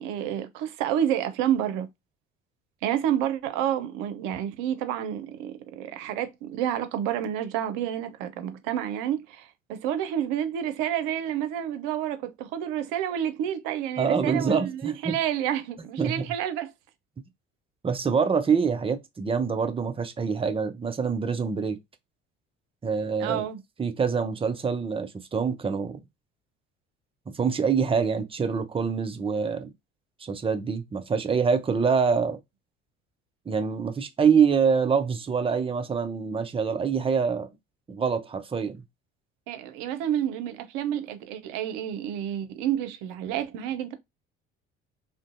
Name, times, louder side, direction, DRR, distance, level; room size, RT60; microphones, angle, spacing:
voice 1, 0.0-1.9 2.8-16.7 23.2-23.6 39.5-43.9, right 10 dB, 65° right, 0.6 m, -29 dB
voice 2, 14.0-15.2 16.0-16.2 17.8-21.8 22.8-23.4 23.8-26.0 27.3-29.7 30.2-32.4 33.5-37.5 37.9-38.8, right 6 dB, 15° right, 0.5 m, -25 dB
2.5 x 2.1 x 2.5 m
hypercardioid pair, 55°, 34 cm